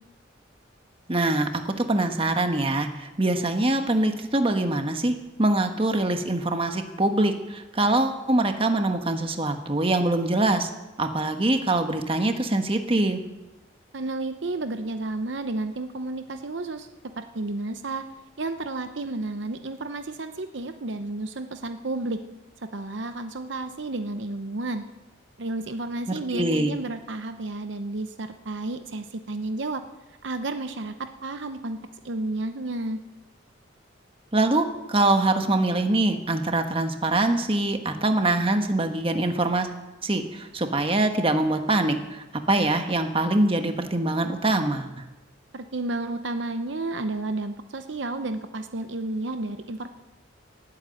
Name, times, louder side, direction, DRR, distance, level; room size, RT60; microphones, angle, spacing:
voice 1, 1.1-10.7 11.0-13.2 26.1-26.7 34.3-39.7 40.0-45.0, right 2 dB, 30° right, 6 dB, 1.2 m, -24 dB
voice 2, 13.9-16.9 17.2-18.0 18.4-22.2 22.6-24.8 25.4-29.8 30.2-31.8 32.0-33.0 45.5-49.9, right 2 dB, 65° right, 8 dB, 0.8 m, -31 dB
19.0 x 9.3 x 7.7 m, 1.0 s
head